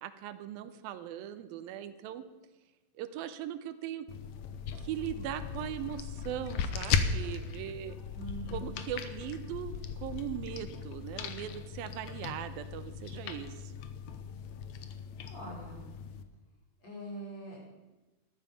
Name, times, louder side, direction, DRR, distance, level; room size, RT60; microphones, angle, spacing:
voice 1, 0.0-2.2 3.0-4.1 4.8-8.0 8.5-13.7, right 11 dB, 85° right, 12 dB, 2.6 m, -39 dB
sound 1, 4.1-16.2, left 6 dB, 70° left, 1.9 m, -37 dB
voice 2, 8.1-8.8 15.2-15.9 16.8-17.9, right 1 dB, 45° left, -4 dB, 6.6 m, -44 dB
13.5 x 13.0 x 7.0 m, 1.1 s
omnidirectional pair, 4.1 m